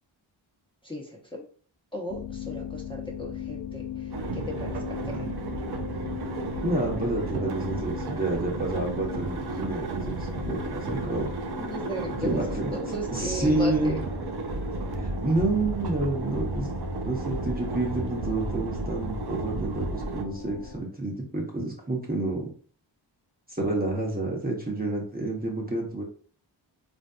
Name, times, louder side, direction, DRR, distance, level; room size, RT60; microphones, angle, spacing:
voice 1, 1.9-3.8 4.3-4.7 5.1-5.2 11.6-12.4 12.8-14.0, equal, 10° left, -4 dB, 0.9 m, -35 dB
sound 1, 2.1-20.8, left 7 dB, 55° left, 0.6 m, -40 dB
sound 2, 4.1-20.2, right 3 dB, 55° right, 0.6 m, -33 dB
voice 2, 6.6-11.3 12.2-14.0 14.9-16.7 17.0-22.5 23.5-26.0, right 2 dB, 20° right, -2 dB, 1.0 m, -29 dB
3.2 x 2.6 x 2.3 m, 0.43 s
cardioid pair, 50°, 49 cm